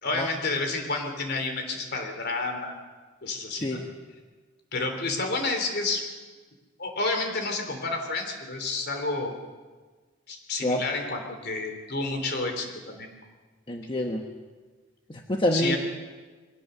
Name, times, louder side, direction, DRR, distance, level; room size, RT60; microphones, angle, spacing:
voice 1, 0.0-2.7 3.2-3.8 4.7-6.0 6.8-9.3 10.3-13.1 15.5-15.8, left 3 dB, 55° left, 4 dB, 3.3 m, -30 dB
voice 2, 13.7-14.2 15.1-15.8, left 1 dB, 25° left, 2 dB, 1.2 m, -26 dB
22.5 x 18.0 x 6.9 m, 1.4 s
head